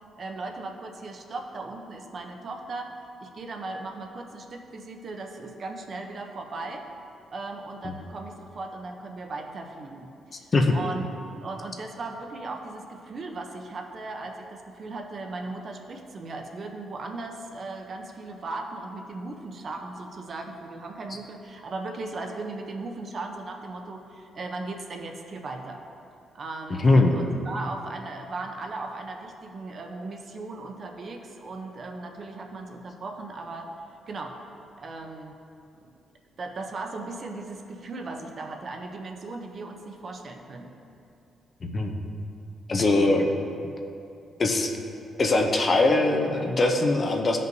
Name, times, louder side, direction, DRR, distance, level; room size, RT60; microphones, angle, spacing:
voice 1, 0.2-6.9 7.3-10.1 10.4-11.1 11.4-25.8 26.3-33.7 34.1-34.4 34.8-35.3 36.4-40.7 42.9-43.3, right 3 dB, 40° right, 3 dB, 0.6 m, -37 dB
voice 2, 26.7-27.2 41.6-41.9 42.7-43.3 44.4-44.7 45.2-47.4, left 2 dB, 30° left, 3 dB, 0.6 m, -21 dB
13.5 x 5.3 x 2.7 m, 2.6 s
cardioid pair, 150°, 0 cm